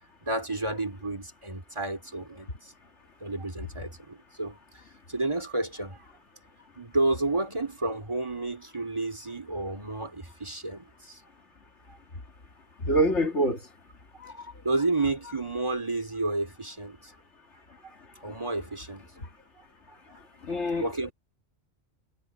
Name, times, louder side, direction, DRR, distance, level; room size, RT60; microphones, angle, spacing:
voice 1, 0.2-2.7 3.2-6.1 6.8-11.2 11.9-12.0 14.1-17.1 18.2-19.1 20.8-21.1, right 2 dB, 25° right, 2.9 m, -31 dB
voice 2, 12.8-13.6 20.4-21.1, right 1 dB, 75° left, 2.4 m, -25 dB
omnidirectional pair, 1.2 m